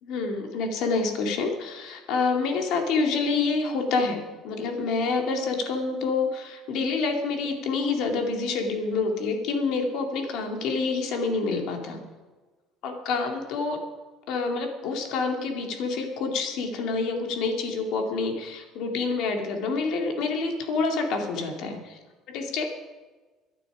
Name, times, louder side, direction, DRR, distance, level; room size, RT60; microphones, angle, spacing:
voice 1, 0.0-12.0 12.8-13.8 14.3-22.0 22.3-22.6, left 4 dB, 65° left, 3 dB, 2.5 m, -27 dB
22.0 x 11.5 x 5.0 m, 1.3 s
cardioid pair, 155°, 0 cm